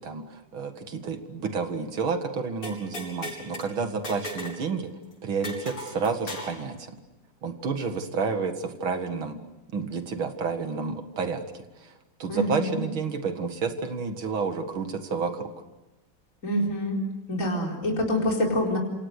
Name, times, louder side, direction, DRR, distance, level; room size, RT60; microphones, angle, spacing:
voice 1, 0.0-4.9 5.2-7.0 7.4-9.4 9.7-11.9 12.2-15.5, right 5 dB, 70° right, 7 dB, 2.7 m, -30 dB
sound 1, 2.6-3.7 4.0-4.6 4.9-5.0 5.4-6.6, left 1 dB, 80° left, 6.6 m, -37 dB
voice 2, 12.3-12.8 16.4-17.0 17.3-18.8, left 1 dB, 35° left, -1 dB, 4.8 m, -26 dB
28.0 x 27.0 x 6.6 m, 1.0 s
omnidirectional pair, 2.4 m